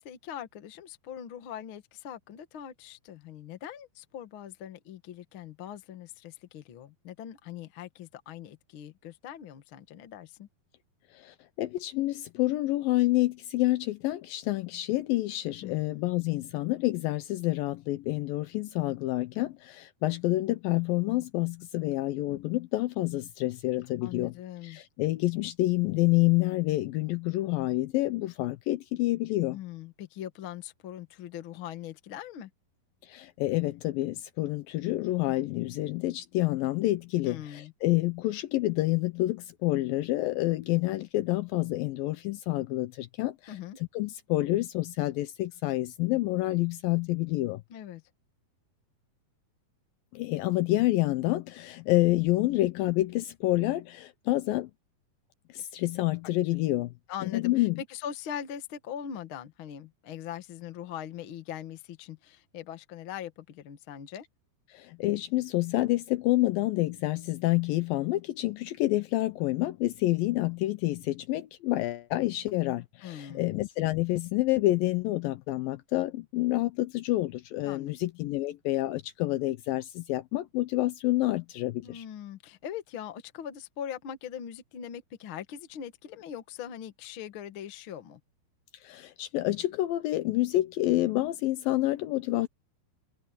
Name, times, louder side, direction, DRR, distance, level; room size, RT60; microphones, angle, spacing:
voice 1, 0.0-10.5 15.6-16.1 24.0-24.8 29.5-32.5 37.3-37.7 43.5-43.8 47.7-48.0 57.1-64.2 73.0-73.4 77.6-77.9 81.8-88.2, left 9 dB, 60° left, 1.3 m, -41 dB
voice 2, 11.1-24.3 24.6-29.6 33.0-43.5 44.0-47.6 50.1-54.7 55.5-56.9 57.2-57.8 64.7-82.0 88.8-92.5, left 17 dB, 75° left, 2.2 m, -28 dB
omnidirectional pair, 4.6 m